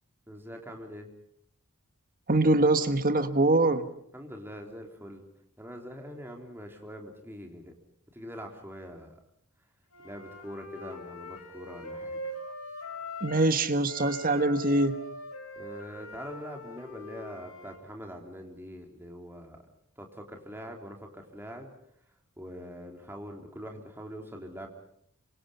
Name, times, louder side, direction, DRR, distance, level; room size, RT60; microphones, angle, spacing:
voice 1, 0.3-1.1 4.1-5.3 5.6-7.7 8.1-9.2 10.0-12.2 15.6-19.6 20.0-21.7 22.4-24.7, equal, 10° right, 2 dB, 3.8 m, -43 dB
voice 2, 2.3-3.9 13.2-15.0, right 2 dB, 40° right, 9 dB, 1.5 m, -23 dB
Wind instrument woodwind instrument, 9.9-13.5 13.8-17.8, left 2 dB, 75° left, 6.2 m, -42 dB
27.0 x 25.0 x 5.6 m, 0.68 s
head